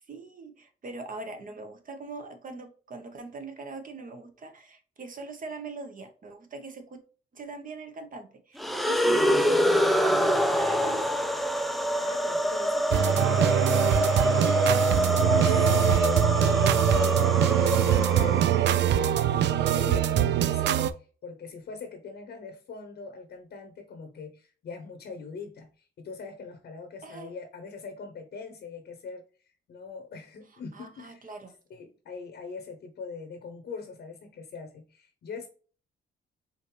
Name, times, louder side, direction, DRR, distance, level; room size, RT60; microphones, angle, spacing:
voice 1, 0.1-7.0 7.3-11.3 27.0-27.3 30.7-31.5, right 3 dB, 45° right, 1.1 m, -41 dB
sound 1, 8.6-18.8, equal, ahead, 0.5 m, -25 dB
voice 2, 11.5-29.3 29.7-31.3 31.7-35.5, left 5 dB, 60° left, 0.9 m, -42 dB
sound 2, 12.9-20.9, right 11 dB, 60° right, 0.4 m, -23 dB
4.9 x 2.7 x 3.2 m
cardioid pair, 90°, 20 cm